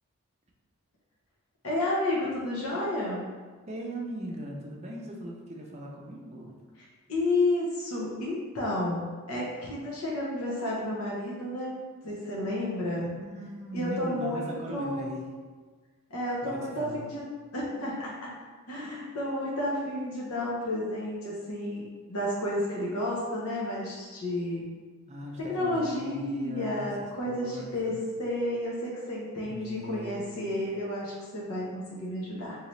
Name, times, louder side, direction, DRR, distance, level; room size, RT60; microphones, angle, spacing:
voice 1, 1.6-3.3 7.1-9.0 9.3-13.0 13.7-15.1 16.1-17.2 17.5-18.3 18.7-21.8 22.1-24.7 25.5-27.9 28.2-32.7, left 1 dB, 75° left, -6 dB, 0.9 m, -31 dB
voice 2, 3.7-6.6 13.0-15.2 16.4-17.1 18.8-18.9 25.1-26.9 27.3-28.0 29.4-30.5, right 1 dB, 30° right, -1 dB, 0.5 m, -39 dB
3.8 x 2.8 x 3.1 m, 1.4 s
head